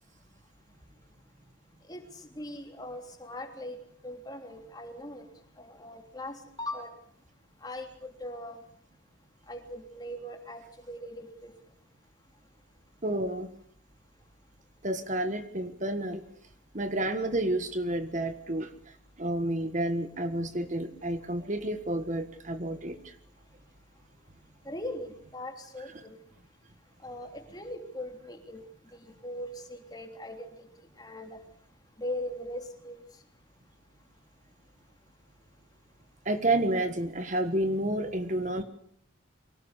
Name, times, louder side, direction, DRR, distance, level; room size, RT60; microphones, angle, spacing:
voice 1, 2.4-3.8 4.0-5.2 5.6-6.9 7.6-8.6 9.5-10.6 10.9-11.5 24.6-26.2 27.0-28.6 29.2-30.5 31.0-31.4 32.0-33.0, left 1 dB, 20° left, 4 dB, 3.3 m, -40 dB
voice 2, 13.0-13.5 14.8-16.2 16.7-18.7 19.2-23.0 25.9-26.0 36.2-38.6, right 1 dB, 40° right, 9 dB, 1.6 m, -30 dB
24.0 x 18.5 x 8.3 m, 0.63 s
head